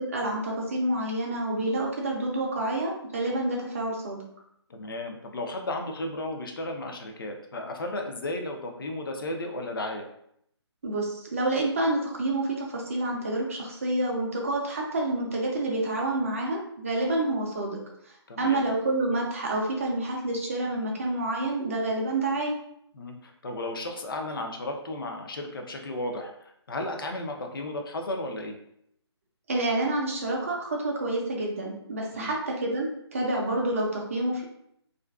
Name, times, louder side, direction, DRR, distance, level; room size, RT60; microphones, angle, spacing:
voice 1, 0.0-4.2 10.8-17.8 18.4-22.6 29.5-34.4, right 2 dB, 30° right, -1 dB, 0.5 m, -28 dB
voice 2, 4.7-10.1 18.3-18.6 22.9-28.6 32.1-32.3, left 1 dB, 50° left, 3 dB, 0.5 m, -34 dB
2.4 x 2.2 x 2.3 m, 0.73 s
hypercardioid pair, 165°, 15 cm